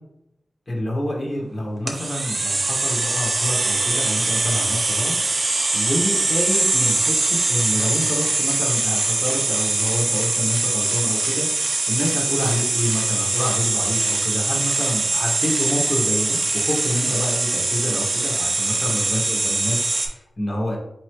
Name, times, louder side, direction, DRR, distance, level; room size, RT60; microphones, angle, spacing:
voice 1, 0.7-5.1 5.7-11.5 11.9-20.8, left 1 dB, 45° left, -2 dB, 1.3 m, -27 dB
sound 1, 1.9-20.1, right 2 dB, 60° right, 0.8 m, -22 dB
4.2 x 3.1 x 3.1 m, 0.82 s
cardioid pair, 60°, 0 cm